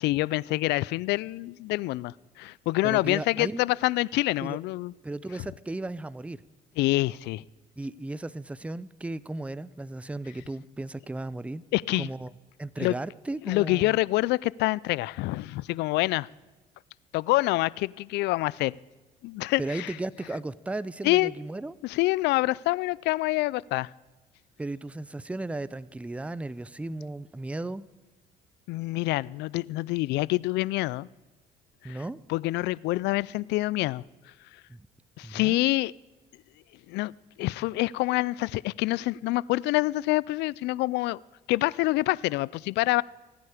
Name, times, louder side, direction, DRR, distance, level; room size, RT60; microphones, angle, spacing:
voice 1, 0.0-4.9 6.8-7.4 11.7-12.1 12.8-13.0 13.5-16.3 17.1-18.7 19.2-19.9 21.0-21.3 21.8-23.9 28.7-31.1 31.8-32.0 32.3-34.0 35.2-35.9 36.9-37.1 37.4-41.2 41.5-43.0, left 19 dB, 75° left, 23 dB, 0.4 m, -26 dB
voice 2, 2.8-3.6 4.4-4.6 5.0-6.4 7.8-11.6 11.9-12.3 12.6-14.0 19.6-21.8 24.6-27.9 31.8-32.2 34.7-34.9 35.2-35.6, right 2 dB, 5° right, 19 dB, 0.5 m, -35 dB
25.5 x 9.5 x 5.0 m, 1.2 s
supercardioid pair, 85°, 18 cm